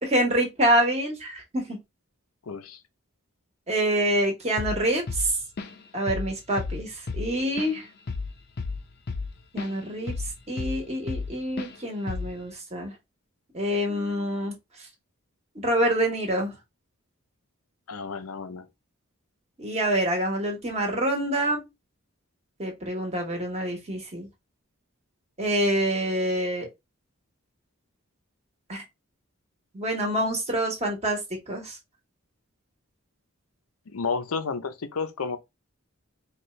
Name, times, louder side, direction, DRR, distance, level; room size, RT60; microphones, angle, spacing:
voice 1, 0.0-1.6 3.7-5.3 5.9-7.9 9.5-10.1 10.5-12.9 13.5-14.5 15.5-16.5 19.6-21.6 22.6-24.3 25.4-26.7 28.7-28.8 29.7-31.2 31.5-31.8, right 1 dB, 30° right, 1.3 m, -26 dB
voice 2, 2.4-2.8 17.9-18.7 33.9-35.4, left 5 dB, 90° left, 0.6 m, -31 dB
Drum kit / Drum, 4.6-4.8 5.1-5.8 6.1-6.3 6.6-9.7 10.1-11.3 11.6-11.8 12.1-12.4, left 4 dB, 50° left, 0.5 m, -32 dB
4.3 x 2.4 x 3.1 m
head